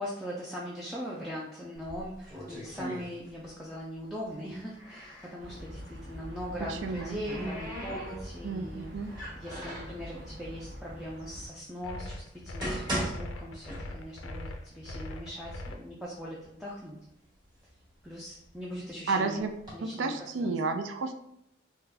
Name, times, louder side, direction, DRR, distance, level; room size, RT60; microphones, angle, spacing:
voice 1, 0.0-17.0 18.0-19.5 19.7-20.5, equal, ahead, -6 dB, 0.4 m, -40 dB
sound 1, 1.7-3.6 3.9-5.4 6.5-8.5 9.1-10.0 10.8-10.9 11.5-11.6 12.3-14.3 14.6-14.7 15.4-15.5 15.9-16.5 17.0-18.7 19.4-19.7, equal, 20° right, 1.5 m, -38 dB
sound 2, 5.4-11.5, equal, 60° right, 0.8 m, -45 dB
voice 2, 6.7-7.2 8.4-9.1 19.1-19.5 19.8-21.1, right 3 dB, 75° right, 6 dB, 0.4 m, -31 dB
sound 3, 11.8-15.8, left 1 dB, 80° left, 0.4 m, -41 dB
3.8 x 2.3 x 2.7 m, 0.78 s
head